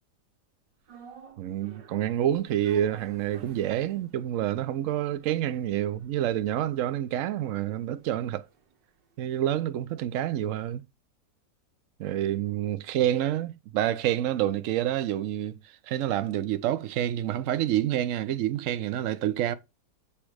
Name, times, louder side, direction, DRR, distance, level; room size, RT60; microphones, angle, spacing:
sound 1, 0.9-9.2 9.4-9.5, right 6 dB, 85° right, 1.7 m, -54 dB
voice 1, 1.4-8.5 9.2-10.8 12.0-19.5, right 12 dB, 65° right, 0.8 m, -28 dB
8.5 x 3.1 x 4.9 m
omnidirectional pair, 1.8 m